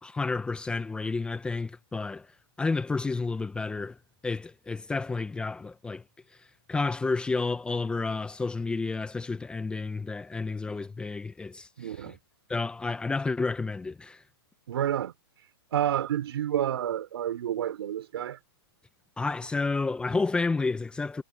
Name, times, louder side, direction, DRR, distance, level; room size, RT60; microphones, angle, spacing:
voice 1, 0.0-2.3 2.6-4.0 4.2-6.0 6.7-11.7 12.5-14.2 19.2-21.2, left 3 dB, 5° left, 1.1 m, -30 dB
voice 2, 11.8-12.2 14.7-15.1 15.7-18.4, right 10 dB, 70° right, 5.0 m, -29 dB
hypercardioid pair, 145°, 14 cm